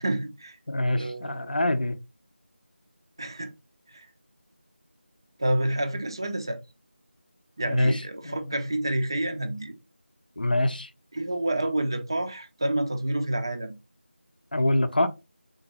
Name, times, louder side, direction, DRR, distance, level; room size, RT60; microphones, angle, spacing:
voice 1, 0.0-0.6 1.0-1.6 3.2-3.5 3.9-4.1 5.4-6.6 7.6-9.8 11.1-13.7, right 1 dB, 25° right, 0.4 m, -28 dB
voice 2, 0.7-2.0 7.7-8.3 10.4-10.9 14.5-15.1, left 1 dB, 50° left, 0.6 m, -25 dB
3.9 x 3.9 x 2.9 m
figure-of-eight pair, 170°, 6 cm